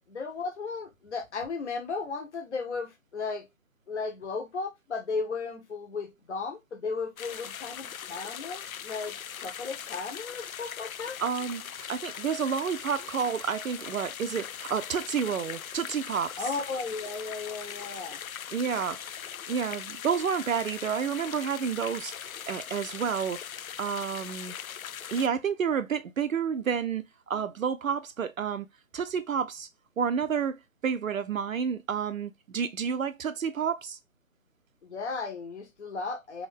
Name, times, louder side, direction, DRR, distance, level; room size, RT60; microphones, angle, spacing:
voice 1, 0.1-3.5 3.9-11.2 16.4-18.2 34.8-36.5, left 4 dB, 55° left, 1.6 m, -35 dB
sound 1, 7.2-25.3, left 9 dB, 85° left, 0.5 m, -40 dB
voice 2, 11.2-16.3 18.5-19.1 19.5-22.1 22.5-23.4 23.8-24.5 25.1-28.7 28.9-29.7 30.0-34.0, right 7 dB, 75° right, 0.6 m, -30 dB
3.8 x 3.6 x 3.4 m
figure-of-eight pair, 145°, 41 cm